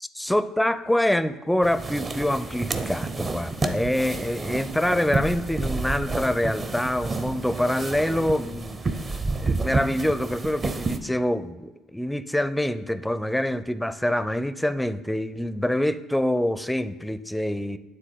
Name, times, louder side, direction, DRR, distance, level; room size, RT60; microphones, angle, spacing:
voice 1, 0.2-8.8 9.4-17.8, left 1 dB, 5° left, 13 dB, 0.5 m, -25 dB
sound 1, 1.6-11.0, right 3 dB, 35° right, 0.7 m, -30 dB
9.1 x 3.8 x 5.5 m, 1.2 s
hypercardioid pair, 60°, 0 cm